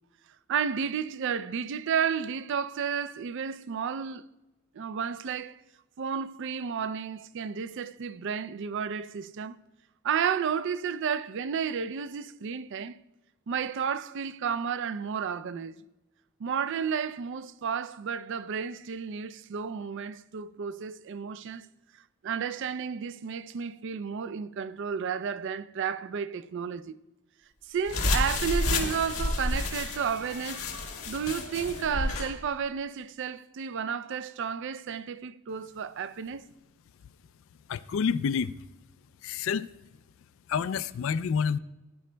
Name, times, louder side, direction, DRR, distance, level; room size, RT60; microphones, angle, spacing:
voice 1, 0.5-4.3 4.7-5.6 6.0-9.6 10.0-13.0 13.5-15.7 16.4-21.7 22.2-27.0 27.7-30.7 31.1-36.4, right 7 dB, 60° right, 0.4 m, -32 dB
sound 1, 27.9-32.3, left 2 dB, 85° left, 1.7 m, -30 dB
voice 2, 37.7-38.6 39.2-39.7 40.5-41.6, left 6 dB, 65° left, 0.3 m, -28 dB
16.5 x 10.0 x 2.2 m
head